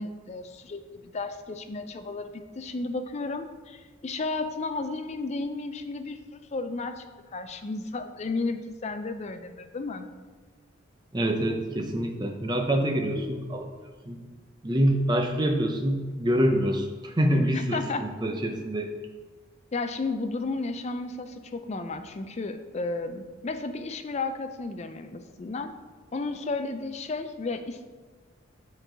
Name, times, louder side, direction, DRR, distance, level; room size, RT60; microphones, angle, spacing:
voice 1, 0.0-7.0 7.3-10.1 17.5-18.1 19.7-25.7 26.1-27.9, left 3 dB, 30° left, 8 dB, 0.4 m, -33 dB
voice 2, 11.1-13.7 14.1-14.2 14.6-18.9, equal, 20° right, 3 dB, 0.6 m, -26 dB
6.9 x 4.5 x 3.9 m, 1.4 s
head